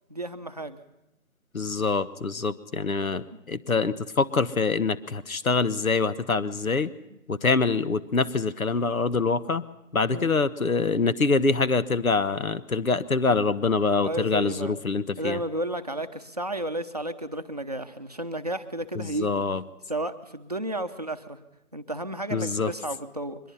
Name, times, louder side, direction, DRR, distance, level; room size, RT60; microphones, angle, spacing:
voice 1, 0.1-0.8 7.1-7.2 7.8-8.0 10.1-10.4 13.2-13.5 14.0-14.8 15.2-19.4 19.9-21.4 21.7-23.4, right 1 dB, 30° right, 7 dB, 0.7 m, -33 dB
voice 2, 1.5-6.9 7.3-9.6 9.9-15.4 18.9-19.6 22.3-22.7, left 4 dB, 75° left, 14 dB, 1.2 m, -25 dB
23.0 x 21.0 x 5.7 m, 0.91 s
figure-of-eight pair, 165°, 42 cm